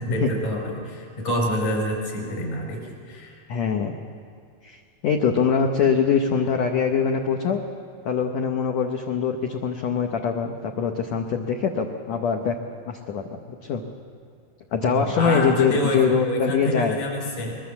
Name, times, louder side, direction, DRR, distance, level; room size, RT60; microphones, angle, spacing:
voice 1, 0.0-3.4 14.8-17.6, equal, 55° left, 0 dB, 6.2 m, -27 dB
voice 2, 3.5-4.0 4.6-7.6 8.0-12.6 12.9-13.8 14.7-17.0, left 6 dB, 70° left, 3 dB, 1.6 m, -23 dB
23.0 x 21.0 x 7.2 m, 2.2 s
omnidirectional pair, 4.4 m